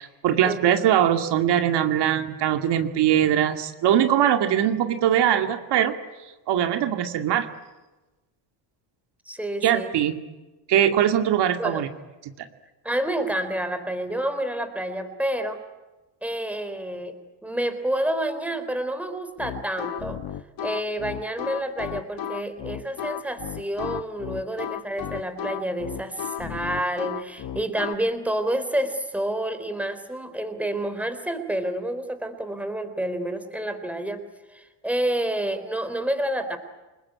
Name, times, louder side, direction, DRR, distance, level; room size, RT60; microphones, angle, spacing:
voice 1, 0.0-6.0 6.5-7.5 9.6-10.2 10.7-11.9 12.4-12.5, right 10 dB, 60° right, 7 dB, 2.3 m, -21 dB
voice 2, 9.3-9.9 11.6-11.8 12.8-15.6 16.2-20.2 20.6-34.2 34.5-36.6, right 1 dB, 5° right, 9 dB, 3.5 m, -29 dB
sound 1, 19.4-27.9, left 10 dB, 50° left, 1.4 m, -34 dB
28.5 x 20.5 x 9.7 m, 1.1 s
cardioid pair, 120°, 45 cm